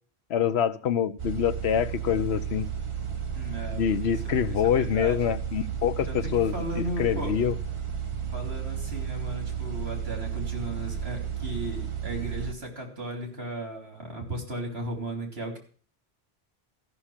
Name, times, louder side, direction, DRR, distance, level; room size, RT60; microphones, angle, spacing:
voice 1, 0.3-2.7 3.7-7.6, left 9 dB, 80° left, 13 dB, 1.0 m, -26 dB
sound 1, 1.2-12.5, right 8 dB, 30° right, 1.0 m, -33 dB
voice 2, 3.3-4.2 4.5-5.2 6.1-7.3 8.3-15.6, right 1 dB, 70° right, 2 dB, 3.6 m, -36 dB
14.0 x 6.3 x 7.3 m, 0.43 s
omnidirectional pair, 1.1 m